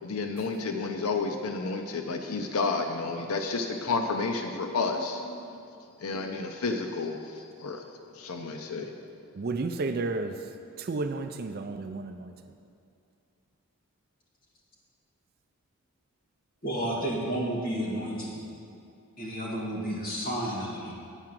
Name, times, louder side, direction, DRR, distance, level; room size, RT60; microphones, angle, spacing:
voice 1, 0.0-5.4 6.0-7.8 8.2-8.9, left 3 dB, 80° left, 4 dB, 0.6 m, -31 dB
voice 2, 9.3-10.4 10.8-12.3, right 3 dB, 45° right, 8 dB, 0.4 m, -32 dB
voice 3, 16.6-18.4 19.2-20.9, right 1 dB, 40° left, -5 dB, 1.9 m, -31 dB
9.0 x 4.8 x 7.5 m, 2.5 s
head